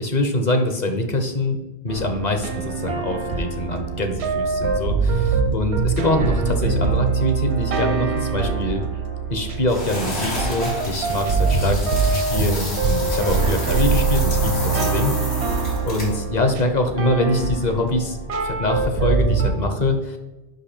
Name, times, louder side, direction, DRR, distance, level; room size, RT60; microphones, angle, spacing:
voice 1, 0.0-1.6 1.8-8.8 9.3-15.1 15.5-18.2 18.4-20.2, left 1 dB, 45° left, 6 dB, 0.9 m, -24 dB
sound 1, 1.9-19.5, right 4 dB, 85° right, 1.0 m, -23 dB
sound 2, 9.7-16.2, left 1 dB, 90° left, 2.6 m, -31 dB
5.3 x 5.2 x 4.3 m, 1.1 s
omnidirectional pair, 1.1 m